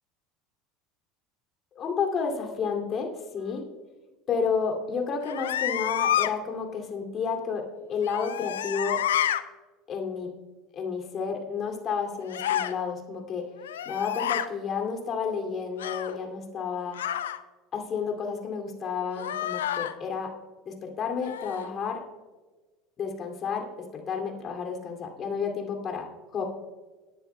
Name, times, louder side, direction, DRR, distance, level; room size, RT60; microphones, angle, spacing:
voice 1, 1.7-3.6 4.3-9.0 9.9-10.3 10.7-13.5 13.8-17.0 17.7-20.3 20.7-22.0 23.0-23.7 23.9-26.1 26.3-26.4, left 6 dB, 40° left, 3 dB, 2.5 m, -31 dB
sound 1, 5.2-6.3 8.0-9.4 12.3-12.7 13.6-14.5 15.8-16.2 16.9-17.4 19.1-19.9 21.2-21.7, left 11 dB, 80° left, 0.5 m, -29 dB
19.0 x 10.0 x 2.2 m, 1.3 s
hypercardioid pair, 75°, 0 cm